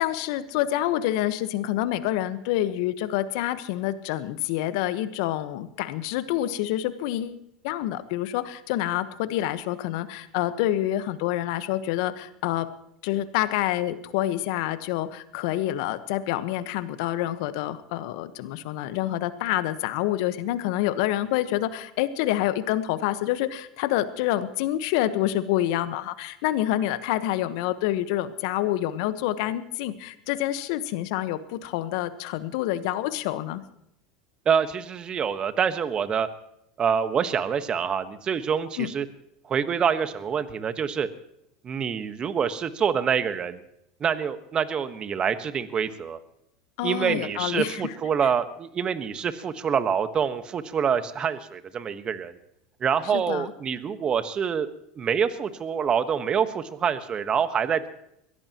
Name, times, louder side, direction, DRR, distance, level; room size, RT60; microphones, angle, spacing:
voice 1, 0.0-12.7 13.0-33.6 38.8-38.9 46.8-47.9 53.1-53.5, left 13 dB, 65° left, 12 dB, 1.2 m, -27 dB
voice 2, 34.4-36.3 36.8-39.0 39.5-41.1 41.6-43.6 44.0-46.2 46.8-52.3 52.8-54.7 55.0-57.8, right 7 dB, 35° right, 11 dB, 1.4 m, -26 dB
22.5 x 16.5 x 3.0 m, 0.76 s
hypercardioid pair, 90°, 3 cm